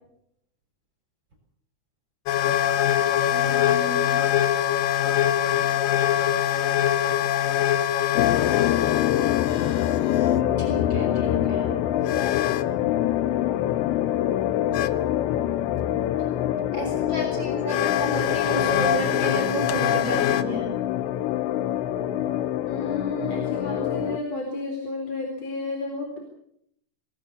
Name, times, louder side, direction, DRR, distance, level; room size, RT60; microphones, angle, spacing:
sound 1, 2.3-10.4 12.1-12.7 14.7-14.9 16.9-17.0 17.7-20.4, left 11 dB, 70° left, 2.4 m, -24 dB
voice 1, 2.9-4.2 9.5-10.0 10.2-11.7 16.7-20.7, right 2 dB, 25° right, 1 dB, 7.0 m, -32 dB
sound 2, 8.2-24.2, left 12 dB, 90° left, 3.3 m, -25 dB
voice 2, 22.7-26.2, left 2 dB, 40° left, 2 dB, 5.0 m, -32 dB
26.5 x 18.5 x 7.0 m, 0.72 s
omnidirectional pair, 4.9 m